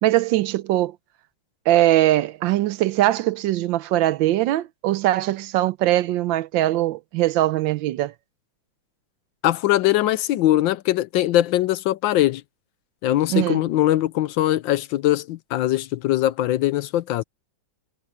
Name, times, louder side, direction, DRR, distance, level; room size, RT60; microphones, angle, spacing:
voice 1, 0.0-0.9 1.7-8.1 13.3-13.6, right 14 dB, 75° right, 1.2 m, -21 dB
voice 2, 9.4-12.4 13.0-17.2, left 14 dB, 75° left, 1.3 m, -21 dB
omnidirectional pair, 2.2 m